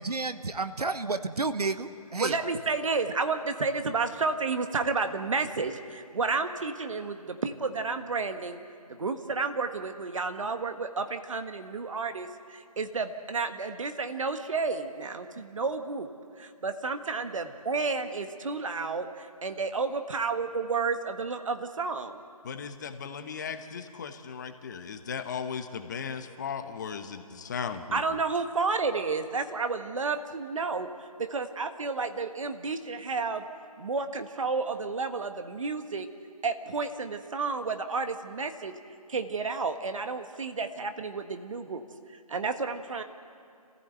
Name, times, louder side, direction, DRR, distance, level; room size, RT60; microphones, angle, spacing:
voice 1, 0.0-2.5, right 3 dB, 75° right, 11 dB, 1.1 m, -31 dB
voice 2, 2.2-8.6 8.9-16.1 16.4-22.2 27.9-30.9 31.2-33.5 33.8-36.1 36.4-38.7 39.1-41.8 42.3-43.0, right 4 dB, 55° right, 8 dB, 1.5 m, -31 dB
voice 3, 22.4-28.0, left 6 dB, 30° left, 8 dB, 1.1 m, -37 dB
27.0 x 15.5 x 8.0 m, 2.4 s
figure-of-eight pair, 150°, 20 cm